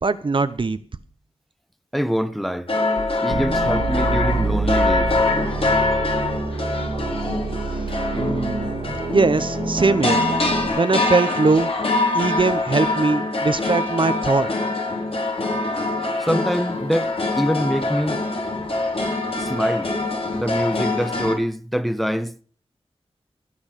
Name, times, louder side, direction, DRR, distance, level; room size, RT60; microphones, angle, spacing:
voice 1, 0.0-0.8 8.1-8.7 9.1-10.2 10.7-11.7 12.1-14.5, right 3 dB, 50° right, 0.9 m, -21 dB
voice 2, 1.9-2.7 3.2-5.1 16.2-18.2 19.4-19.9 20.3-22.4, equal, ahead, 1.2 m, -24 dB
sound 1, 2.7-21.4, left 2 dB, 60° left, 4.8 m, -24 dB
sound 2, 3.3-10.7, right 3 dB, 85° right, 2.6 m, -27 dB
17.5 x 7.1 x 6.8 m
wide cardioid pair, 60°, 11 cm